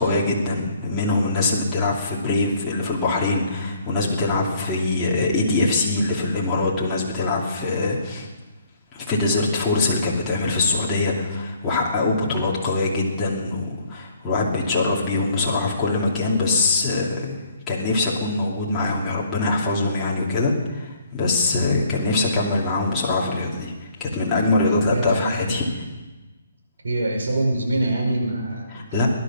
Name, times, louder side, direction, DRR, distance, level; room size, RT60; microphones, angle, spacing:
voice 1, 0.0-8.3 8.9-17.4 17.7-23.7 24.0-25.6 28.9-29.1, left 2 dB, 15° left, -5 dB, 2.7 m, -23 dB
voice 2, 24.8-25.8 26.8-29.1, right 1 dB, 80° right, 1 dB, 5.1 m, -25 dB
19.5 x 11.5 x 6.2 m, 1.2 s
hypercardioid pair, 165°, 0 cm